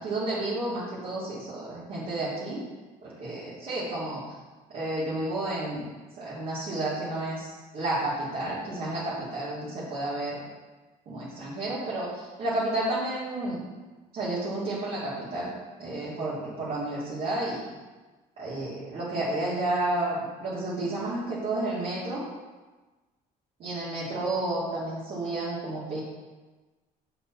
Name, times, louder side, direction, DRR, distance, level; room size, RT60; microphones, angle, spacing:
voice 1, 0.0-2.6 3.0-4.3 4.7-5.9 6.2-10.4 11.1-13.7 14.1-15.5 15.8-17.6 18.4-22.2 23.6-26.0, right 2 dB, 60° right, -11 dB, 2.8 m, -31 dB
6.6 x 5.9 x 5.6 m, 1.2 s
cardioid pair, 110°, 17 cm